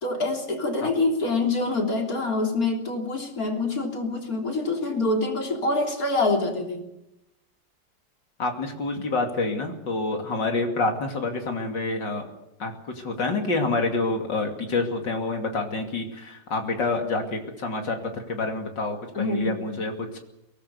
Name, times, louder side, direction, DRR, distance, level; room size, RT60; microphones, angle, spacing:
voice 1, 0.0-6.9 19.2-19.8, left 2 dB, 50° left, 2 dB, 3.8 m, -26 dB
voice 2, 8.4-12.3 12.6-20.2, left 3 dB, 70° left, 3 dB, 3.2 m, -27 dB
23.5 x 18.5 x 6.9 m, 0.88 s
omnidirectional pair, 2.0 m